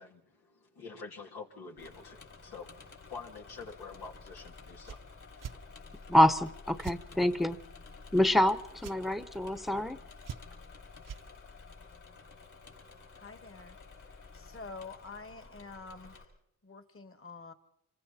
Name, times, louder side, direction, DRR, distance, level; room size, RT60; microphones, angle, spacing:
voice 1, 0.0-5.5, left 4 dB, 85° left, 0 dB, 3.1 m, -47 dB
Engine / Mechanisms, 1.8-16.3, left 4 dB, 55° left, 5.0 m, -51 dB
sound 1, 4.8-5.0 5.4-5.6 6.8-7.0 8.8-9.0 10.2-10.7 11.0-11.2, right 8 dB, 60° right, 1.0 m, -42 dB
voice 2, 6.1-7.6 8.1-10.0, left 1 dB, ahead, 12 dB, 1.1 m, -26 dB
voice 3, 13.2-13.8 14.3-16.2 16.6-17.5, left 4 dB, 35° left, 9 dB, 2.1 m, -47 dB
26.5 x 22.5 x 4.4 m, 0.77 s
cardioid pair, 60°, 37 cm